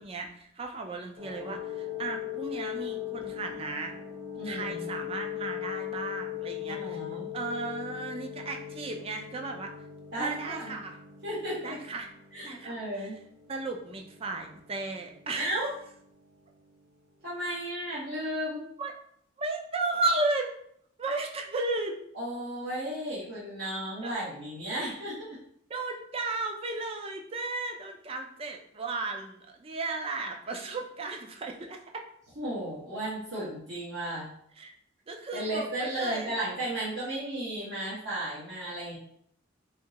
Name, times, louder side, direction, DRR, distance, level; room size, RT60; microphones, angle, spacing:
voice 1, 0.0-3.9 4.4-7.0 7.3-9.7 10.2-11.0 11.6-12.1 12.4-13.1 13.5-15.5 18.8-18.9 19.4-20.6 21.0-22.0 24.0-24.2 25.7-31.8 34.6-34.7 35.1-36.3, right 3 dB, 30° right, 3 dB, 0.4 m, -34 dB
sound 1, 1.2-16.8 17.5-17.6, left 11 dB, 90° right, 0.9 m, -40 dB
voice 2, 4.4-4.8 6.7-7.3 10.1-10.7 11.2-11.8 12.3-13.2 15.4-15.7 17.2-18.6 22.1-25.3 32.4-34.3 35.3-39.0, right 1 dB, 60° right, -8 dB, 1.0 m, -34 dB
3.4 x 2.8 x 2.8 m, 0.68 s
head